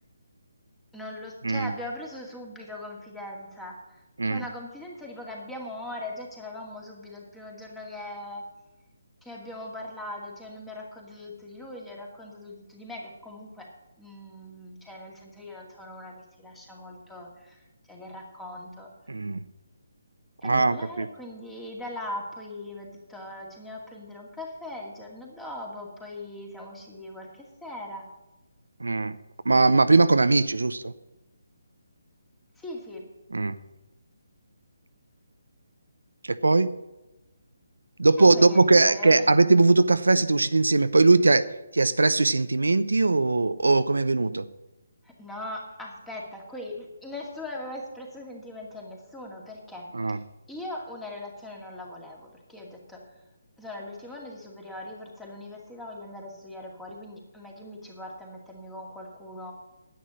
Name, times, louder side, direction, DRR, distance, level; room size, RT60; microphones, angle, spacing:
voice 1, 0.9-8.4 9.2-13.7 14.0-18.9 20.4-28.1 32.6-33.1 38.3-39.3 45.0-50.2 50.5-53.2 53.6-59.5, left 1 dB, 5° left, -1 dB, 2.3 m, -40 dB
voice 2, 19.1-19.4 20.4-21.1 28.8-29.2 29.4-30.9 33.3-33.6 36.3-36.7 38.0-41.4 41.7-44.5 49.9-50.2, right 3 dB, 80° right, 13 dB, 0.6 m, -20 dB
10.0 x 9.3 x 6.4 m, 1.0 s
figure-of-eight pair, 150°, 0 cm